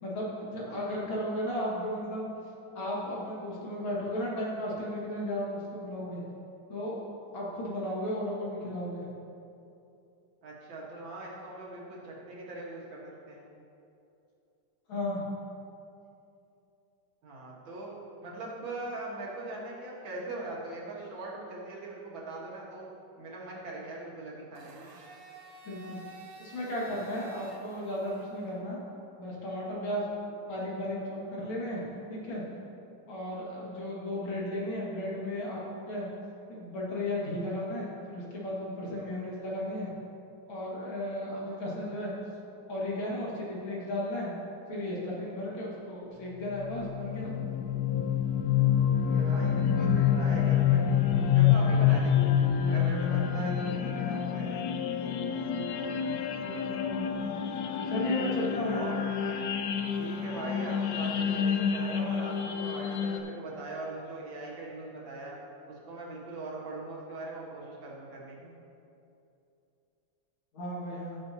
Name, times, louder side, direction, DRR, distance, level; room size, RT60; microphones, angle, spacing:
voice 1, 0.0-2.3 2.7-6.2 6.7-7.0 7.3-9.1 14.9-15.2 25.6-26.0 26.4-28.8 29.2-30.0 30.5-32.4 33.1-35.6 35.9-36.1 36.5-39.9 40.5-42.1 42.7-44.4 44.7-47.3 56.3-57.2 57.9-58.8 70.5-71.2, left 1 dB, 90° left, -5 dB, 2.8 m, -35 dB
voice 2, 10.4-13.5 17.2-17.9 18.2-22.9 23.2-24.9 48.9-50.8 51.1-52.3 52.7-54.6 58.7-59.0 59.9-65.4 65.7-68.6, right 2 dB, 75° right, -4 dB, 2.3 m, -41 dB
Domestic sounds home sounds, 24.5-28.6, right 3 dB, 50° right, 0.7 m, -51 dB
sound 1, 46.5-63.2, left 8 dB, 70° left, 1.0 m, -27 dB
15.0 x 6.8 x 2.9 m, 2.7 s
omnidirectional pair, 2.1 m